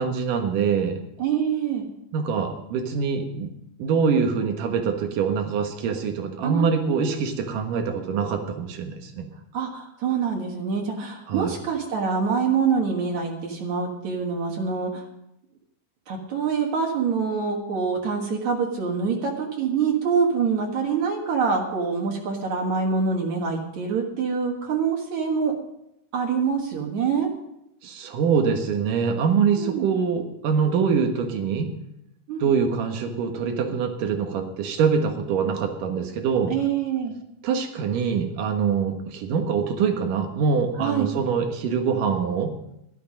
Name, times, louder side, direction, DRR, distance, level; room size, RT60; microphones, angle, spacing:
voice 1, 0.0-1.0 2.1-3.5 3.8-9.2 11.3-11.5 27.8-31.7 32.4-36.5 37.4-42.5, right 6 dB, 85° right, 5 dB, 3.0 m, -24 dB
voice 2, 1.2-1.9 6.4-7.3 9.5-15.0 16.1-25.5 26.1-27.3 29.6-29.9 32.3-32.5 36.5-37.2 40.8-41.1, right 6 dB, 65° right, 0 dB, 2.8 m, -25 dB
13.0 x 11.5 x 5.2 m, 0.81 s
omnidirectional pair, 3.7 m